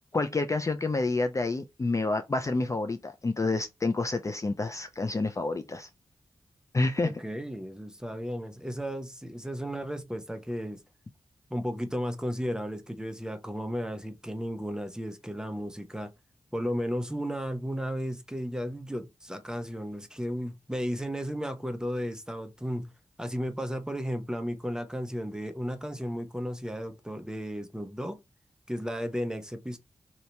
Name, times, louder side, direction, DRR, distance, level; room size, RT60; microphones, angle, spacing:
voice 1, 0.1-5.9 6.7-7.1, left 3 dB, 30° left, 0.4 m, -28 dB
voice 2, 7.0-10.8 11.5-16.1 16.5-22.9 23.2-28.2 28.7-29.8, equal, 5° right, 0.7 m, -34 dB
2.8 x 2.7 x 3.2 m
cardioid pair, 60°, 11 cm